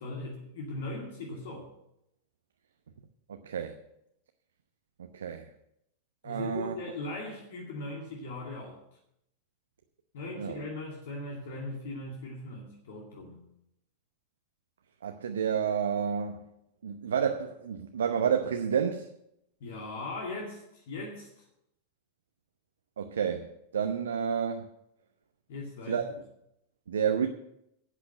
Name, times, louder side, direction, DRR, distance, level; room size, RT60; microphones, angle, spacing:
voice 1, 0.0-1.7 6.2-8.8 10.1-13.4 19.6-21.4 25.5-26.0, left 2 dB, 55° left, 0 dB, 2.3 m, -39 dB
voice 2, 3.3-3.8 5.1-5.5 6.2-6.8 10.4-10.6 15.0-16.4 16.8-19.1 23.0-24.7 25.9-26.1 26.9-27.3, right 7 dB, 65° right, 6 dB, 0.8 m, -30 dB
11.0 x 8.3 x 7.8 m, 0.80 s
figure-of-eight pair, 90°, 0 cm